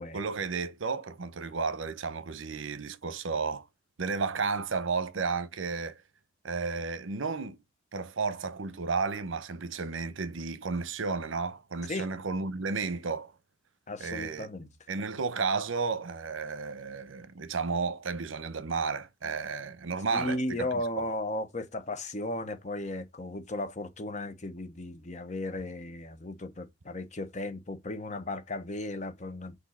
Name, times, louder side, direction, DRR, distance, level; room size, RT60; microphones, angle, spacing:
voice 1, 0.1-3.6 4.0-6.0 6.4-7.6 7.9-13.3 14.0-14.5 14.9-20.7 21.0-21.1, right 4 dB, 75° right, 0.8 m, -32 dB
voice 2, 13.9-14.7 20.1-29.6, left 1 dB, 35° left, 0.8 m, -35 dB
6.3 x 2.7 x 5.6 m
head